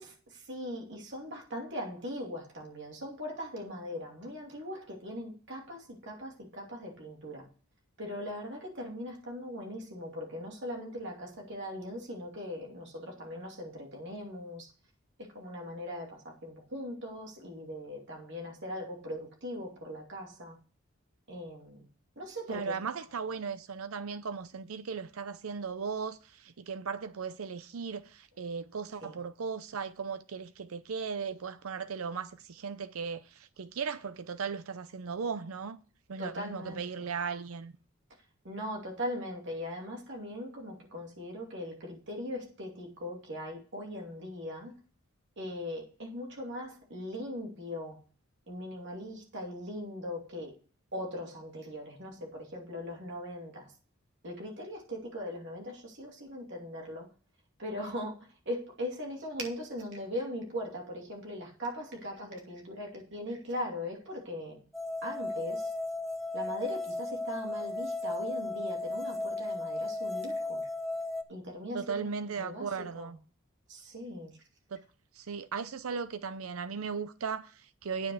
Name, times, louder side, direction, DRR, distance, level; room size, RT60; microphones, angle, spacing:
voice 1, 0.0-7.5 8.0-14.7 15.3-20.6 21.3-21.9 22.2-22.7 29.0-29.2 36.2-36.8 38.4-44.7 45.4-48.0 48.5-50.5 50.9-53.7 54.2-57.1 57.6-58.2 58.5-64.6 65.0-65.7 66.3-70.7 71.3-72.1 72.4-72.7 73.0-73.1 73.7-74.3, left 1 dB, 60° right, 2.5 m, -40 dB
voice 2, 22.5-35.8 36.1-37.7 71.7-73.2 74.7-74.8 75.1-78.1, right 5 dB, 90° right, 0.6 m, -37 dB
sound 1, 64.7-71.2, left 2 dB, ahead, 0.7 m, -35 dB
9.2 x 5.6 x 6.3 m
head